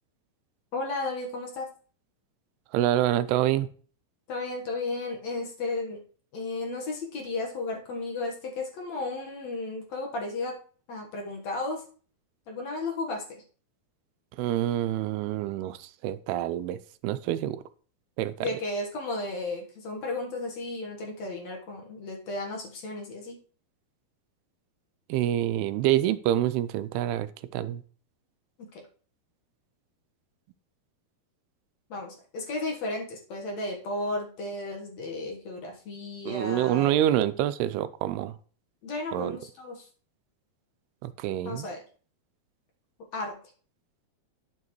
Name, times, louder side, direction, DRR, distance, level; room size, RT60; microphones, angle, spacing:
voice 1, 0.7-1.7 4.3-6.0 6.3-10.5 10.9-11.8 12.5-13.4 18.4-23.4 28.7-28.8 31.9-36.9 38.8-39.8 41.4-41.8 43.1-43.3, left 2 dB, 55° left, 0 dB, 2.1 m, -34 dB
voice 2, 2.7-3.7 14.4-17.6 18.2-18.5 25.1-27.8 36.3-38.3 39.1-39.4 41.0-41.7, right 12 dB, 85° right, 14 dB, 2.5 m, -27 dB
11.0 x 7.3 x 3.1 m, 0.42 s
omnidirectional pair, 4.5 m